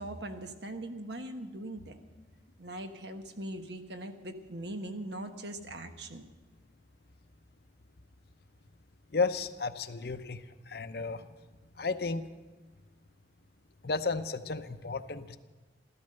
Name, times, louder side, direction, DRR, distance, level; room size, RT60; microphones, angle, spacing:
voice 1, 0.0-2.0 2.6-6.2, right 1 dB, 65° right, 7 dB, 1.3 m, -41 dB
voice 2, 9.1-10.4 10.7-11.3 11.8-12.2 13.8-15.4, left 4 dB, 55° left, 10 dB, 0.7 m, -33 dB
14.0 x 14.0 x 6.6 m, 1.2 s
head